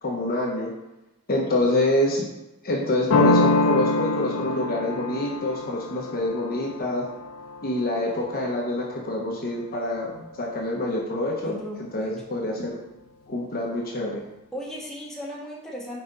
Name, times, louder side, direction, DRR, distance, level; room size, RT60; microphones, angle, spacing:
voice 1, 0.0-0.7 1.3-2.2 2.6-7.1 7.6-11.5 11.9-12.8 13.3-14.2, left 1 dB, 45° left, -2 dB, 1.0 m, -26 dB
sound 1, 3.1-8.6, left 2 dB, 80° left, 0.6 m, -25 dB
voice 2, 11.4-12.1 14.5-16.0, equal, 5° left, -5 dB, 1.6 m, -36 dB
6.0 x 4.9 x 4.0 m, 0.97 s
head